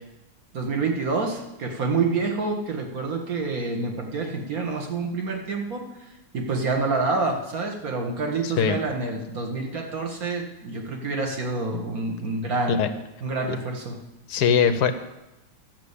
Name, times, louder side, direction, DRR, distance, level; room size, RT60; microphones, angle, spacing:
voice 1, 0.5-12.8 13.2-14.0, right 3 dB, 45° right, 2 dB, 1.9 m, -27 dB
voice 2, 8.4-8.8 12.7-12.9 14.3-14.9, left 7 dB, 65° left, 9 dB, 1.1 m, -21 dB
12.0 x 6.3 x 8.3 m, 1.0 s
omnidirectional pair, 2.3 m